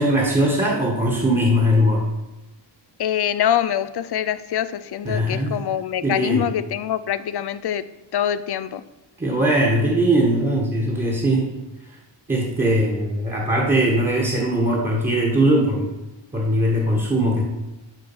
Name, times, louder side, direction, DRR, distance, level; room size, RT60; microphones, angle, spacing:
voice 1, 0.0-2.0 5.0-5.6 6.0-6.4 9.2-11.5 12.3-15.9 16.3-17.4, right 1 dB, 15° right, -1 dB, 1.7 m, -20 dB
voice 2, 3.0-7.8 8.1-8.8, left 10 dB, 60° left, 14 dB, 0.6 m, -24 dB
12.0 x 4.6 x 6.2 m, 1.1 s
wide cardioid pair, 165°, 45 cm